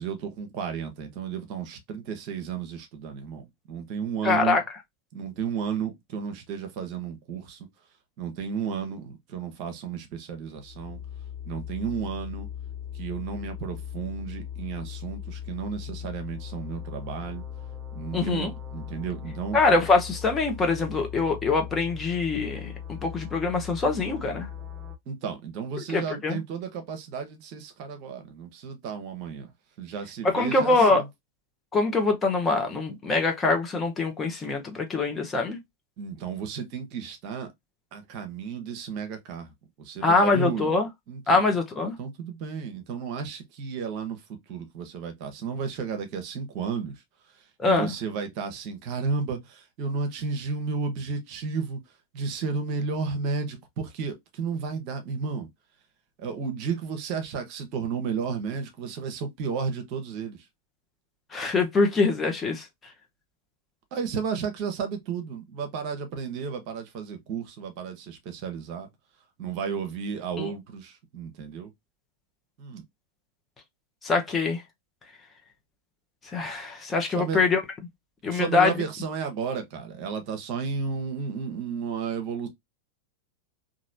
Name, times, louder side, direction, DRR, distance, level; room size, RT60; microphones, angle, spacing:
voice 1, 0.0-4.6 5.1-7.7 8.2-11.0 11.5-12.5 12.9-17.4 17.9-19.6 25.1-29.5 29.8-31.1 36.0-37.5 37.9-39.5 39.8-40.7 41.1-41.4 42.0-47.0 47.3-51.8 52.1-55.5 56.2-60.5 63.9-68.9 69.4-71.7 72.6-72.8 77.1-77.4 78.3-82.5, right 6 dB, 45° right, 0.8 m, -33 dB
voice 2, 4.2-4.6 18.1-18.5 19.5-22.7 23.0-24.5 25.9-26.4 30.3-31.0 31.7-35.6 40.0-40.9 41.3-42.0 47.6-47.9 61.3-62.7 70.4-70.5 74.0-74.6 76.3-77.6 78.2-78.7, left 3 dB, 20° left, 0.8 m, -24 dB
sound 1, 10.5-25.0, left 9 dB, 20° right, 0.5 m, -39 dB
3.0 x 2.5 x 2.5 m
figure-of-eight pair, 90°, 0 cm